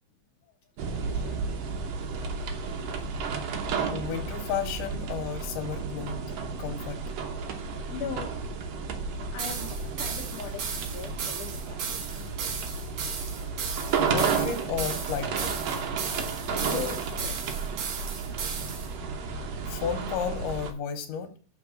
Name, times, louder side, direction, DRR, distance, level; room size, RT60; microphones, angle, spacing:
sound 1, 0.8-20.7, right 5 dB, 85° right, 1.4 m, -32 dB
voice 1, 1.0-1.4 7.9-8.6 9.3-11.9 16.5-17.6, left 7 dB, 65° left, 0 dB, 2.2 m, -39 dB
voice 2, 3.9-7.0 14.0-15.5 19.7-21.4, left 7 dB, 85° left, 5 dB, 2.8 m, -33 dB
sound 2, 9.4-18.9, right 6 dB, 60° right, 2.0 m, -35 dB
7.0 x 4.5 x 6.4 m, 0.38 s
omnidirectional pair, 4.5 m